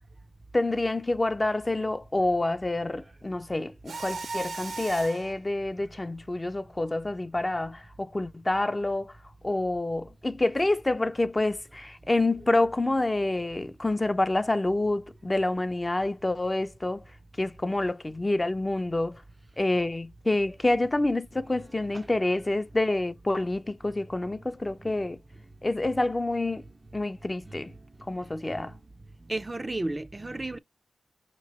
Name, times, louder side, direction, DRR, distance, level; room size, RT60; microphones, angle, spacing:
voice 1, 0.5-9.1 9.4-17.0 17.4-19.2 19.6-25.2 25.6-26.6 26.9-27.7 28.1-28.7, left 2 dB, 25° left, 0.5 m, -27 dB
Mechanisms, 3.9-5.3, right 3 dB, 80° right, 0.8 m, -36 dB
voice 2, 29.3-30.6, right 2 dB, 30° right, 0.4 m, -33 dB
5.2 x 3.0 x 2.9 m
cardioid pair, 50°, 0 cm